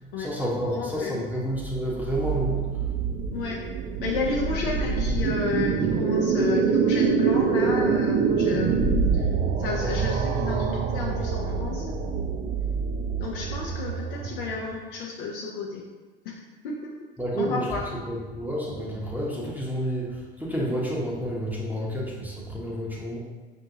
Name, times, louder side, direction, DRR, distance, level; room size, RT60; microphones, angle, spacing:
voice 1, 0.0-2.8 17.2-23.2, equal, 5° right, -5 dB, 0.8 m, -30 dB
voice 2, 0.7-1.2 3.3-3.6 4.0-8.8 9.1-9.3 9.6-11.9 13.2-15.8 16.2-16.4 16.6-16.9 17.4-17.8, left 4 dB, 65° left, -2 dB, 0.6 m, -31 dB
sound 1, 1.5-14.7, right 5 dB, 30° right, 0.5 m, -25 dB
5.2 x 2.6 x 2.8 m, 1.3 s
figure-of-eight pair, 70°, 29 cm